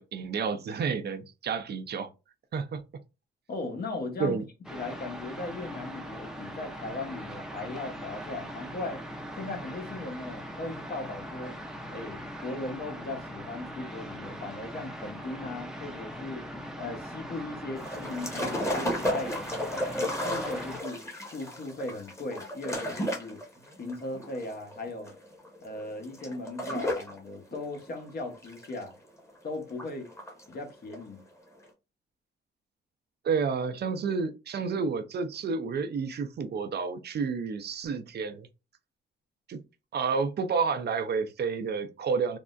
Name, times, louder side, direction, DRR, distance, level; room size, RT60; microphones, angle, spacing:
voice 1, 0.0-2.1 2.5-2.8 4.2-4.4 33.2-38.5 39.5-39.6 39.9-42.4, right 5 dB, 55° right, 0.5 m, -30 dB
voice 2, 3.5-4.4 4.7-9.0 9.3-11.6 11.9-16.4 16.8-21.0 21.3-23.5 23.8-25.1 25.6-28.9 29.4-30.1 30.5-31.2, left 2 dB, 50° left, 1.0 m, -38 dB
sound 1, 4.6-20.8, equal, 5° right, 0.6 m, -41 dB
sound 2, 17.8-27.2 27.5-29.3 29.7-30.5 30.9-31.0, equal, 15° left, 1.1 m, -33 dB
3.5 x 2.0 x 2.4 m
cardioid pair, 75°, 20 cm